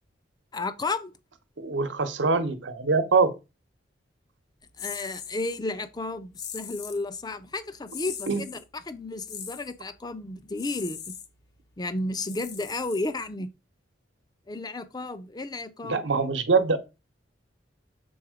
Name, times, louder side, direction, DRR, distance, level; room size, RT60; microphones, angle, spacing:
voice 1, 0.5-1.1 4.8-11.1 11.8-13.5 14.5-16.0, left 2 dB, 20° left, 0.6 m, -33 dB
voice 2, 1.6-3.3 8.3-8.4 15.8-16.8, right 4 dB, 75° right, 1.0 m, -24 dB
sound 1, 4.8-5.6 6.3-7.0 7.9-8.6 9.2-9.7 10.5-11.3 12.2-13.3, left 8 dB, 60° left, 1.0 m, -40 dB
7.1 x 3.7 x 5.0 m
head